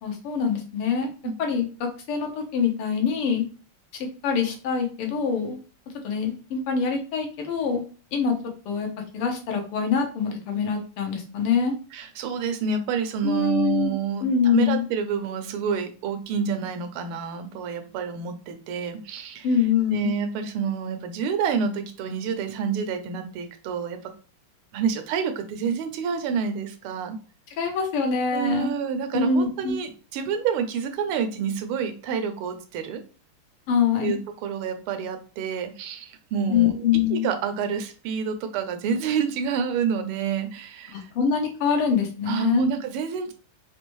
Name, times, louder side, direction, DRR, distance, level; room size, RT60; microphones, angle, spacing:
voice 1, 0.0-1.1 1.4-3.4 4.2-5.6 6.0-7.8 8.1-8.3 8.7-8.9 9.1-11.7 13.2-13.9 14.2-14.8 19.4-20.1 27.6-28.7 29.1-29.8 33.7-34.2 36.5-37.3 40.9-42.7, left 6 dB, 90° left, 3 dB, 1.8 m, -24 dB
voice 2, 11.9-19.5 19.9-24.1 24.7-27.2 28.3-33.0 34.0-36.7 37.1-41.1 42.3-43.3, right 6 dB, 80° right, 7 dB, 1.5 m, -28 dB
4.7 x 2.6 x 3.0 m, 0.37 s
omnidirectional pair, 2.4 m